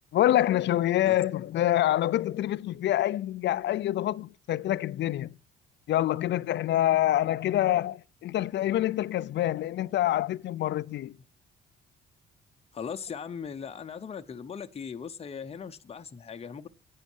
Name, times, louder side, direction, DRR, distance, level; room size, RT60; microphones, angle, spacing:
voice 1, 0.1-5.3 5.9-11.1, left 13 dB, 65° left, 0.5 m, -26 dB
voice 2, 12.7-16.7, left 6 dB, 30° left, 0.7 m, -39 dB
9.2 x 6.4 x 7.2 m
cardioid pair, 90°, 20 cm